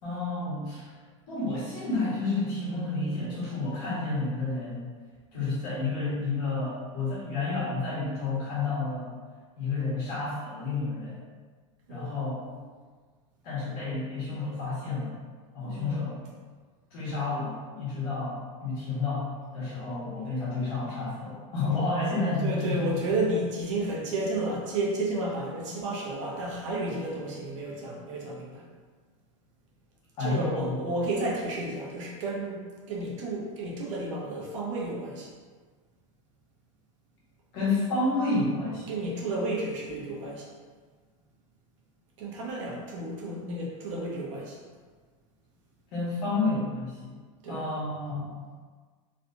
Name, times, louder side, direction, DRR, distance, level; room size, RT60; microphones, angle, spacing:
voice 1, 0.0-0.9 1.3-4.9 5.3-9.1 9.6-11.2 11.9-12.5 13.4-15.1 15.5-16.2 16.9-23.0 30.2-30.8 37.5-38.9 45.9-47.1 47.5-48.4, left 3 dB, 45° left, -9 dB, 1.5 m, -30 dB
voice 2, 11.9-12.6 15.6-16.0 22.4-28.6 30.2-35.3 38.9-40.5 42.2-44.6 47.4-47.7, right 2 dB, 65° right, -3 dB, 0.8 m, -32 dB
3.1 x 2.8 x 2.7 m, 1.5 s
supercardioid pair, 165°, 17 cm